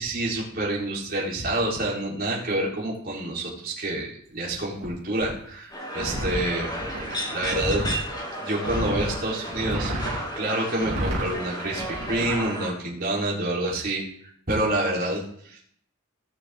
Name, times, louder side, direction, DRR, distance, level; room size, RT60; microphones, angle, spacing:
voice 1, 0.0-6.7 7.3-7.8 8.4-14.0 14.5-15.7, right 1 dB, 45° right, -4 dB, 3.6 m, -28 dB
sound 1, 4.8-4.9 5.2-5.3 6.0-8.0 8.6-9.1 9.5-10.2 10.8-11.3 11.8-12.4, equal, 65° right, 3.4 m, -30 dB
sound 2, 5.7-12.7, right 1 dB, 20° left, 3.4 m, -33 dB
18.0 x 6.9 x 3.6 m, 0.64 s
head